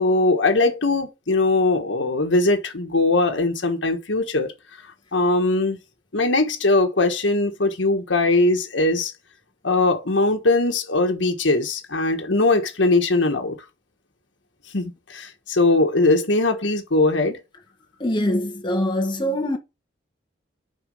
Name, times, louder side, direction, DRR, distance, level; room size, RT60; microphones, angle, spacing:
voice 1, 0.0-4.5 5.1-5.8 6.1-9.1 9.6-13.6 14.7-17.4, left 2 dB, 85° left, 1.4 m, -20 dB
voice 2, 18.0-19.6, left 1 dB, 25° left, 1.5 m, -23 dB
6.1 x 4.9 x 5.5 m
head